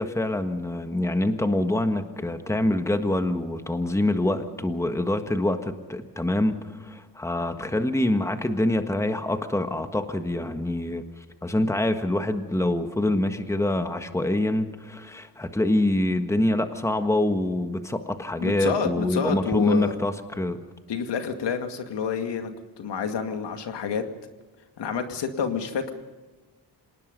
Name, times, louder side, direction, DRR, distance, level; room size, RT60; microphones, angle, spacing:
voice 1, 0.0-11.0 11.4-20.6, left 1 dB, 5° left, 7 dB, 1.5 m, -25 dB
voice 2, 18.4-20.0 20.9-22.5 22.8-24.0 24.8-25.9, left 6 dB, 80° left, 6 dB, 2.3 m, -28 dB
26.5 x 19.0 x 5.3 m, 1.2 s
wide cardioid pair, 120°, 41 cm